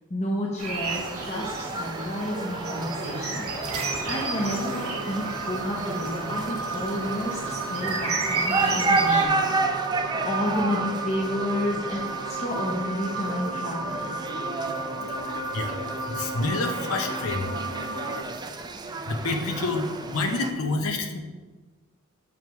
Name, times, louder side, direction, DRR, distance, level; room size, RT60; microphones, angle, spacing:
voice 1, 0.1-9.3 9.6-9.8 10.2-14.2, left 1 dB, 30° left, -3 dB, 0.8 m, -31 dB
sound 1, 0.6-9.2, right 4 dB, 85° right, 1.2 m, -32 dB
sound 2, 0.8-20.5, right 3 dB, 20° right, 0.4 m, -32 dB
sound 3, 2.7-18.2, right 3 dB, 65° right, 1.0 m, -34 dB
voice 2, 15.1-15.8 16.1-17.5 19.1-21.2, left 3 dB, 70° left, 4 dB, 0.7 m, -28 dB
7.3 x 3.1 x 5.7 m, 1.2 s
head